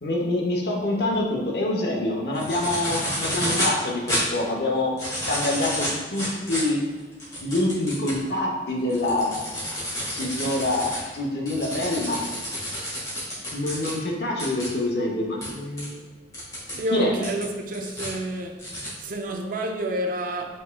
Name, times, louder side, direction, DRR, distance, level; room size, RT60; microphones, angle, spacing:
voice 1, 0.0-4.9 5.3-6.8 7.4-9.4 10.1-12.2 13.5-16.0 16.9-17.1, left 1 dB, 60° left, 0.8 m, -26 dB
sound 1, 2.3-3.8 4.1-4.2 4.8-8.2 8.7-13.9 14.4-14.7 15.4-15.5 15.8-15.9 16.3-16.8 17.2-18.1 18.6-18.9, equal, 20° left, 1.4 m, -30 dB
voice 2, 16.7-18.6 19.0-20.6, right 1 dB, 45° right, 0.4 m, -29 dB
5.2 x 3.6 x 2.2 m
head